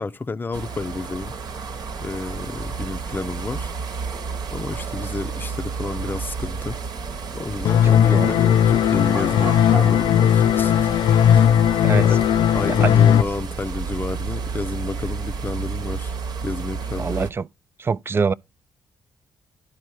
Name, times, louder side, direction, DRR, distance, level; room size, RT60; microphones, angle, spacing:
voice 1, 0.0-1.3 2.0-3.7 4.5-6.8 7.3-10.9 11.3-11.6 12.0-12.2 12.5-16.2 16.4-17.3, left 3 dB, 25° left, 0.6 m, -30 dB
sound 1, 0.5-17.3, right 5 dB, 65° right, 1.1 m, -31 dB
sound 2, 7.7-13.2, left 9 dB, 75° left, 0.4 m, -17 dB
voice 2, 7.8-8.3 11.8-12.1 12.7-12.9 17.0-17.4 17.8-18.3, right 5 dB, 30° right, 0.4 m, -24 dB
10.5 x 4.4 x 4.7 m
supercardioid pair, 55°, 8 cm